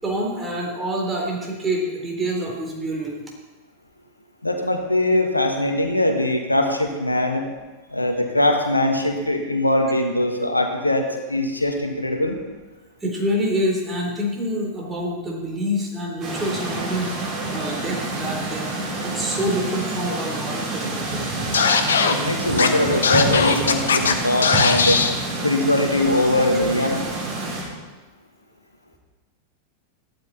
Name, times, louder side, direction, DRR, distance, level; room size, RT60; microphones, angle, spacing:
voice 1, 0.0-3.2 13.0-17.1 17.5-18.8 19.0-21.3, equal, 15° right, -2 dB, 3.7 m, -26 dB
voice 2, 4.4-7.5 7.9-12.4 22.1-25.0 25.4-27.0, left 1 dB, 85° left, 4 dB, 1.6 m, -21 dB
sound 1, 16.2-27.6, right 2 dB, 30° right, 5.2 m, -28 dB
Scratching (performance technique), 21.5-22.1 22.6-22.7 23.0-24.1 24.4-25.1, left 5 dB, 65° left, 1.1 m, -18 dB
14.0 x 12.0 x 4.3 m, 1.2 s
figure-of-eight pair, 90°, 0 cm